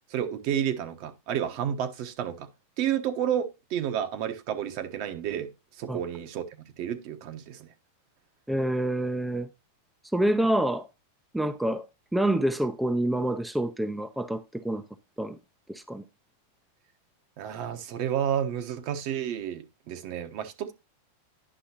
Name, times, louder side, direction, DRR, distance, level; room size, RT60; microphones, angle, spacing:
voice 1, 0.1-2.5 2.8-5.5 5.8-6.4 6.8-7.7 17.4-20.7, right 9 dB, 55° right, 1.1 m, -30 dB
voice 2, 8.5-9.5 10.1-10.9 11.3-11.9 12.1-14.8 15.2-15.4 15.7-16.0, right 1 dB, 5° right, 0.5 m, -27 dB
10.0 x 5.6 x 2.9 m
hypercardioid pair, 120°, 0 cm